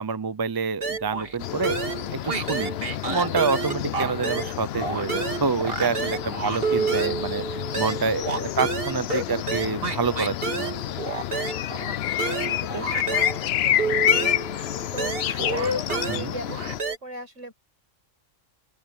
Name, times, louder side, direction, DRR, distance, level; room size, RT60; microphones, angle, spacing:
voice 1, 0.0-2.7 3.1-10.8 16.1-16.3, right 5 dB, 25° right, 0.6 m, -27 dB
sound 1, 0.8-1.4 1.6-4.5 4.8-13.4 13.8-17.0, right 4 dB, 50° right, 2.2 m, -29 dB
sound 2, 1.4-16.8, left 11 dB, 65° left, 0.7 m, -29 dB
voice 2, 8.2-8.5 11.8-17.5, right 2 dB, 70° right, 6.5 m, -40 dB
open air
omnidirectional pair, 1.3 m